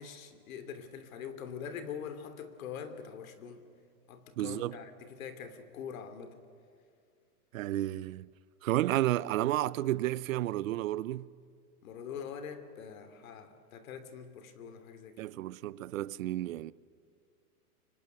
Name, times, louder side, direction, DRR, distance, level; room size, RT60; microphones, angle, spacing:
voice 1, 0.0-3.6 4.1-6.4 11.8-15.3, left 7 dB, 60° left, 2.9 m, -44 dB
voice 2, 4.4-4.8 7.5-8.3 8.6-11.3 15.2-16.7, right 14 dB, 60° right, 0.7 m, -31 dB
25.5 x 25.0 x 9.5 m
supercardioid pair, 165°, 46 cm